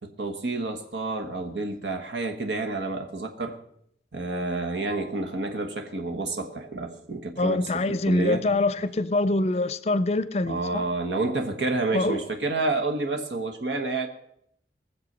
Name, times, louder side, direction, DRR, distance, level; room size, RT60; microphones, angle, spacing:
voice 1, 0.0-3.5 4.1-8.4 10.5-14.1, right 3 dB, 90° right, 1.3 m, -29 dB
voice 2, 7.4-10.8 11.9-12.2, left 2 dB, 35° left, 0.5 m, -25 dB
20.5 x 7.3 x 5.4 m
head